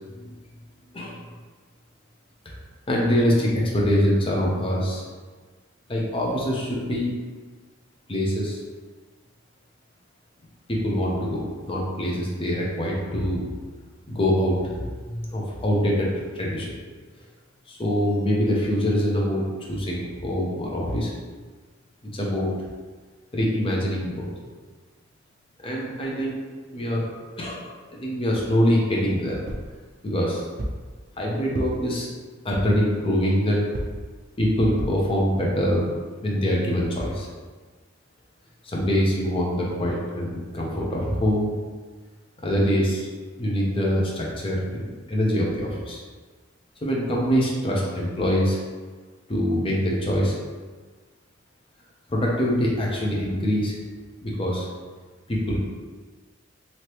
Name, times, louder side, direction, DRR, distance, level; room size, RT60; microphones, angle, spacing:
voice 1, 2.9-5.0 5.9-7.1 8.1-8.6 10.7-13.5 14.1-14.8 15.0-16.1 16.3-16.7 17.7-19.4 19.7-21.1 22.1-22.5 23.3-24.3 25.6-26.4 26.7-27.1 27.4-27.6 27.9-29.4 30.0-30.4 31.2-32.1 32.4-33.7 34.4-37.3 38.6-41.5 42.4-43.1 43.4-46.0 46.8-48.6 49.3-50.4 52.1-53.8 54.2-54.7 55.3-55.6, equal, 25° left, -3 dB, 0.6 m, -24 dB
sound 1, 29.5-29.8 30.6-30.9 31.5-32.0 32.5-32.9 33.7-34.1 34.8-35.1 35.6-35.7 36.0-36.1, right 1 dB, 45° right, 0.4 m, -32 dB
3.2 x 2.8 x 2.9 m, 1.4 s
head